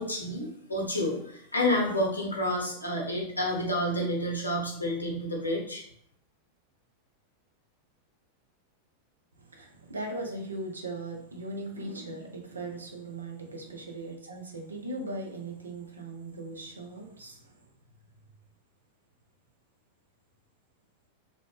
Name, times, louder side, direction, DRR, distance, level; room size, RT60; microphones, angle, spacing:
voice 1, 0.0-5.8, left 1 dB, 80° left, -1 dB, 0.7 m, -29 dB
voice 2, 9.4-17.6, right 2 dB, 75° right, 2 dB, 0.5 m, -39 dB
2.5 x 2.1 x 3.4 m, 0.65 s
figure-of-eight pair, 90°, 0 cm